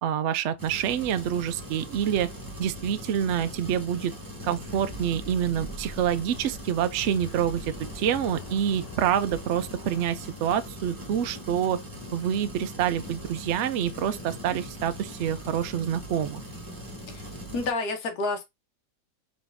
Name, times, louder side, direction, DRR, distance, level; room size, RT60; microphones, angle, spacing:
voice 1, 0.0-2.3 2.6-4.1 4.4-11.8 12.1-16.4, right 9 dB, 70° right, 0.6 m, -27 dB
sound 1, 0.6-17.7, equal, 15° right, 0.9 m, -41 dB
sound 2, 4.6-10.8, left 1 dB, 30° left, 0.8 m, -44 dB
voice 2, 17.1-18.4, left 3 dB, 70° left, 1.5 m, -30 dB
3.9 x 3.1 x 3.4 m
omnidirectional pair, 1.8 m